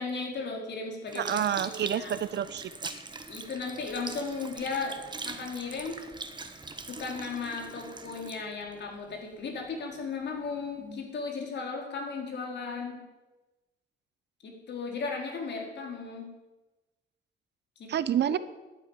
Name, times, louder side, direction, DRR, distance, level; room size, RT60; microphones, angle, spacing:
voice 1, 0.0-2.1 3.3-4.9 5.2-6.0 6.9-13.0 14.4-16.3 17.8-17.9, left 4 dB, 60° left, 1 dB, 4.2 m, -36 dB
Sink (filling or washing) / Liquid, 1.1-9.7 10.3-10.4, right 3 dB, 20° right, 1.4 m, -42 dB
voice 2, 1.1-2.9 17.9-18.4, right 9 dB, 60° right, 14 dB, 0.9 m, -29 dB
11.5 x 10.0 x 9.1 m, 1.1 s
cardioid pair, 90°, 20 cm